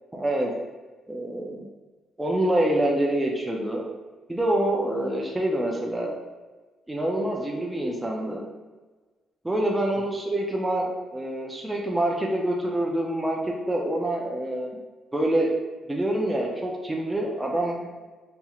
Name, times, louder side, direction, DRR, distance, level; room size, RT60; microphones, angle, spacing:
voice 1, 0.1-0.5 1.1-1.7 2.2-3.8 4.3-6.1 6.9-8.5 9.4-14.8 15.1-15.5 15.9-18.0, right 1 dB, 10° right, -2 dB, 0.5 m, -26 dB
4.2 x 2.9 x 2.4 m, 1.3 s
cardioid pair, 90°, 0 cm